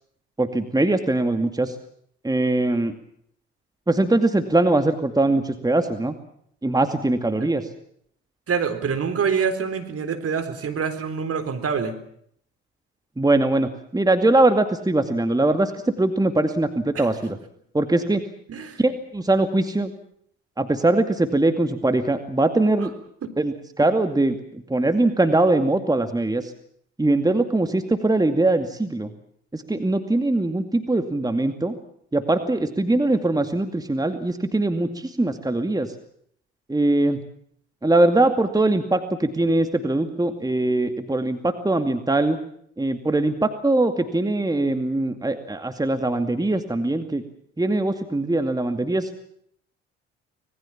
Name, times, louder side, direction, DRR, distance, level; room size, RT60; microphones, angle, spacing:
voice 1, 0.4-1.7 2.2-2.9 3.9-6.1 6.6-7.6 13.2-17.4 17.7-18.2 18.8-19.9 20.6-22.9 23.4-24.4 24.7-26.5 27.0-29.1 29.5-31.8 32.1-35.9 36.7-37.2 37.8-42.4 42.8-47.2 47.6-49.1, right 2 dB, 10° right, 8 dB, 2.4 m, -21 dB
voice 2, 8.5-12.0 16.9-17.1 18.5-18.8 23.2-23.3, right 6 dB, 45° right, 9 dB, 3.9 m, -26 dB
25.5 x 21.0 x 7.4 m, 0.66 s
hypercardioid pair, 55°, 33 cm